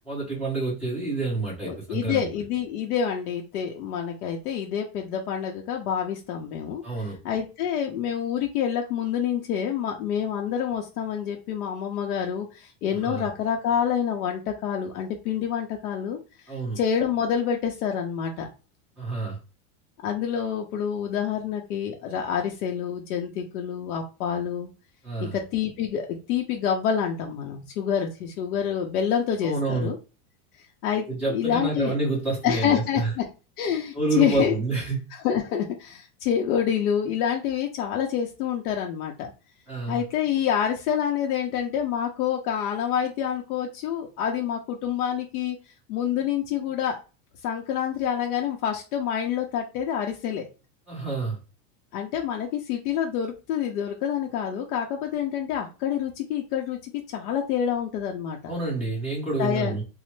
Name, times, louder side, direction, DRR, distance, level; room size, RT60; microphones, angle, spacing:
voice 1, 0.1-2.3 6.8-7.2 13.0-13.3 16.5-16.8 19.0-19.4 25.0-25.4 29.4-29.9 31.1-33.1 33.9-35.0 39.7-40.0 50.9-51.4 58.4-59.8, right 3 dB, 5° right, -8 dB, 1.0 m, -28 dB
voice 2, 1.6-16.2 16.8-18.5 20.0-24.7 25.2-30.0 30.8-32.0 32.4-33.2 33.6-34.5 35.1-39.3 39.9-45.6 45.9-47.0 47.4-50.5 51.9-58.4 59.4-59.8, left 8 dB, 80° left, 1 dB, 0.7 m, -27 dB
3.1 x 2.0 x 3.1 m, 0.32 s
supercardioid pair, 175°, 44 cm